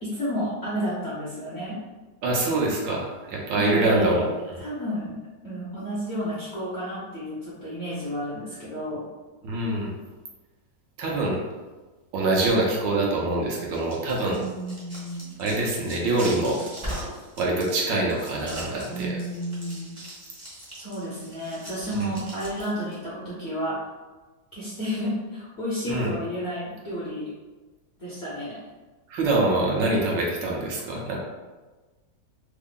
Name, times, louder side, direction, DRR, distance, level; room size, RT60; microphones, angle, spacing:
voice 1, 0.0-1.8 3.5-4.3 4.6-5.2 5.4-9.0 14.3-15.4 18.9-20.0 20.8-23.8 24.5-27.3 28.0-28.6, equal, 55° left, -9 dB, 0.8 m, -31 dB
voice 2, 2.2-4.6 9.4-9.9 11.0-11.4 12.1-14.4 15.4-16.6 17.4-19.2 22.0-22.1 25.9-26.1 29.1-31.2, right 2 dB, 75° right, -2 dB, 1.3 m, -25 dB
sound 1, 13.7-23.0, right 1 dB, 25° right, 0.6 m, -40 dB
3.6 x 2.0 x 3.6 m, 1.2 s
omnidirectional pair, 2.1 m